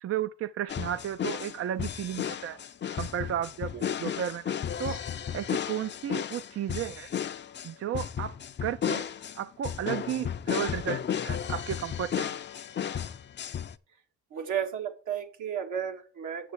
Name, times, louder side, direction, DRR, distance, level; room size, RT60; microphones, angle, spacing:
voice 1, 0.0-2.6 2.9-3.7 4.0-4.5 4.8-5.0 5.3-7.1 7.6-8.4 8.6-9.0 9.3-12.4, right 10 dB, 50° right, 0.5 m, -33 dB
sound 1, 0.7-13.8, left 8 dB, 35° left, 0.5 m, -34 dB
voice 2, 14.3-16.5, right 8 dB, 80° right, 1.9 m, -33 dB
8.4 x 6.4 x 4.5 m
cardioid pair, 90°, 30 cm